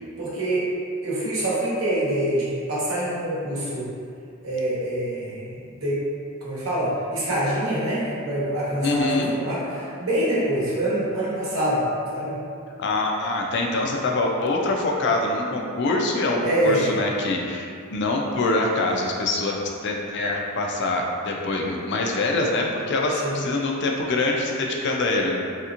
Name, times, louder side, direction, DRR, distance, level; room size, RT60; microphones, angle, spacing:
voice 1, 0.2-0.6 1.0-3.9 4.4-5.5 5.8-6.0 6.4-12.4 16.4-16.9 23.2-23.4, right 1 dB, 75° right, -8 dB, 1.0 m, -25 dB
voice 2, 8.8-9.3 12.8-25.4, left 2 dB, 55° left, 1 dB, 0.4 m, -24 dB
3.3 x 2.8 x 2.5 m, 2.4 s
head